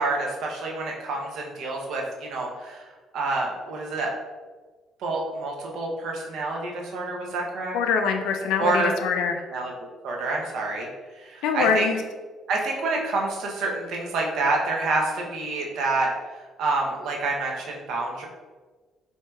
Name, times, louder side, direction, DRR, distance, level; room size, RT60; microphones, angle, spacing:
voice 1, 0.0-2.9 3.1-4.1 5.0-7.7 8.6-8.9 9.5-9.7 10.0-10.9 11.2-11.9 12.5-18.3, right 3 dB, 70° right, -1 dB, 0.7 m, -28 dB
voice 2, 7.7-9.3 11.4-12.0, left 6 dB, 85° left, 4 dB, 0.3 m, -24 dB
4.5 x 2.7 x 2.3 m, 1.3 s
cardioid pair, 95°, 0 cm